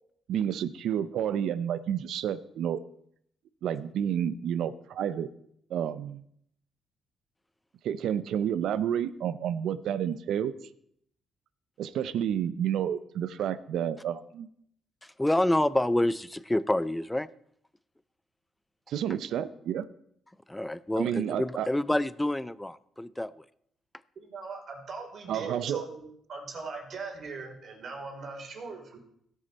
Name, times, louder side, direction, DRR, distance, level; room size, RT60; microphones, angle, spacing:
voice 1, 0.3-2.8 3.6-5.3 5.7-6.2 7.8-10.5 11.8-14.5 18.9-19.9 21.0-21.7 25.3-25.8, right 9 dB, 75° right, 14 dB, 0.6 m, -30 dB
voice 2, 15.0-17.3 20.5-23.4, left 1 dB, 10° left, 17 dB, 0.5 m, -28 dB
voice 3, 24.1-29.0, right 4 dB, 55° right, 1 dB, 3.5 m, -40 dB
17.0 x 6.4 x 4.2 m, 0.70 s
cardioid pair, 90°, 0 cm